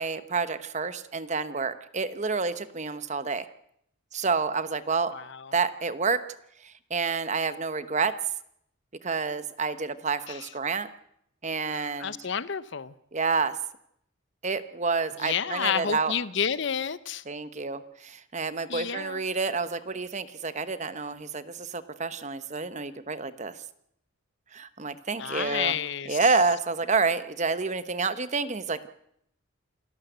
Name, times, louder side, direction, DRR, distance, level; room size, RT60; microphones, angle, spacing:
voice 1, 0.0-3.5 4.1-5.1 5.5-6.2 6.6-8.1 9.0-10.9 11.4-12.1 13.1-13.5 14.4-16.1 17.3-23.6 24.5-25.7 26.1-28.9, right 4 dB, 35° right, 1.0 m, -29 dB
voice 2, 5.1-5.5 10.3-10.5 11.7-12.9 15.2-17.2 18.7-19.2 25.2-26.2, left 7 dB, 60° left, 0.7 m, -30 dB
27.5 x 12.5 x 8.0 m
head